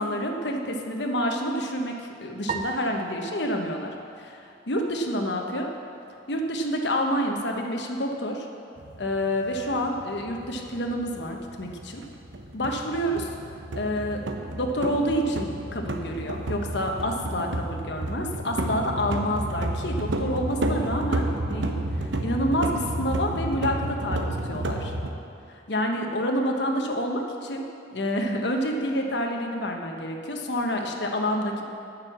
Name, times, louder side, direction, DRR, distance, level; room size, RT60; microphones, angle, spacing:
voice 1, 0.0-5.7 6.3-8.5 9.0-12.0 12.5-13.3 13.8-14.2 14.5-24.9 25.5-27.6 27.9-31.6, equal, 70° left, 2 dB, 1.1 m, -28 dB
sound 1, 2.5-5.0, right 5 dB, 35° right, 0.4 m, -37 dB
sound 2, 8.8-25.1, right 1 dB, 85° right, 0.9 m, -31 dB
10.0 x 6.7 x 7.2 m, 2.6 s
head